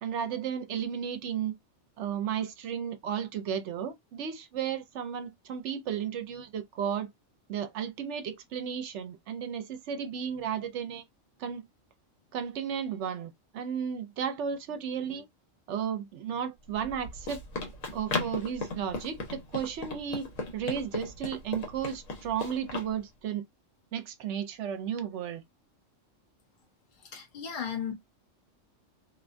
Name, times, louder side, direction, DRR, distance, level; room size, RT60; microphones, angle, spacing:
voice 1, 0.0-1.5 2.0-7.1 7.5-11.0 11.4-11.7 12.3-15.3 15.7-17.4 17.9-20.2 20.5-23.4 23.9-25.4, right 8 dB, 70° right, 0.8 m, -34 dB
Run, 16.7-22.9, left 3 dB, 85° left, 1.2 m, -37 dB
voice 2, 27.0-27.9, left 7 dB, 45° left, 0.9 m, -35 dB
2.7 x 2.2 x 2.4 m
omnidirectional pair, 1.3 m